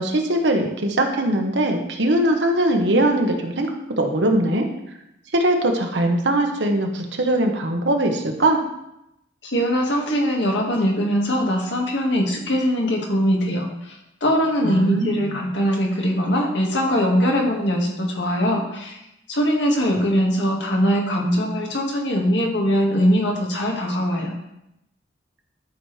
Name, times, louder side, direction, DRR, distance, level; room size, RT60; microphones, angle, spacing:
voice 1, 0.0-3.7 4.0-4.7 5.3-8.6 14.6-15.3, right 1 dB, 75° right, 3 dB, 1.2 m, -21 dB
voice 2, 9.4-19.0 19.3-24.3, equal, 80° left, 0 dB, 1.8 m, -21 dB
12.0 x 6.1 x 3.3 m, 0.85 s
head